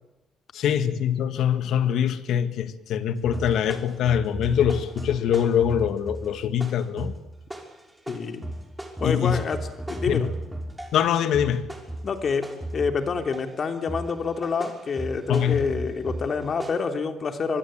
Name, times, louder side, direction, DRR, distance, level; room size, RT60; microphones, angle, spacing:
voice 1, 0.5-7.1 9.0-9.4 10.1-10.3 10.9-11.7 15.3-15.6, left 9 dB, 80° left, 1.9 m, -23 dB
sound 1, 3.2-11.0 11.3-13.5 13.9-16.7, right 1 dB, 5° right, 6.1 m, -35 dB
voice 2, 8.1-8.4 9.0-10.3 12.0-17.6, left 5 dB, 50° left, 3.2 m, -27 dB
25.0 x 23.5 x 9.0 m
cardioid pair, 90°, 0 cm